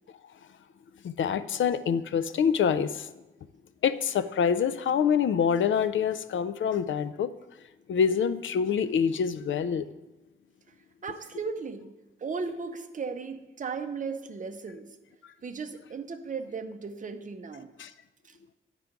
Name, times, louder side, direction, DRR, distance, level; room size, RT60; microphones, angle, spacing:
voice 1, 1.0-3.1 3.8-7.3 7.9-9.9 15.2-15.3 17.8-17.9, left 7 dB, 65° left, 14 dB, 0.4 m, -26 dB
voice 2, 11.0-11.9 12.2-14.9 15.4-17.7 18.2-18.4, right 5 dB, 40° right, 7 dB, 0.6 m, -36 dB
9.2 x 3.8 x 5.8 m, 1.1 s
wide cardioid pair, 135°, 21 cm